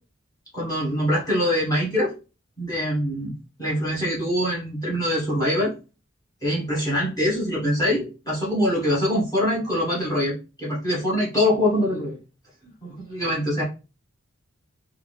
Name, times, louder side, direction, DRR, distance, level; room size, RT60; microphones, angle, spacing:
voice 1, 0.5-2.1 2.6-3.3 3.6-5.7 6.4-12.2 12.8-13.6, left 1 dB, 20° left, -5 dB, 1.2 m, -24 dB
3.5 x 2.3 x 3.2 m, 0.32 s
head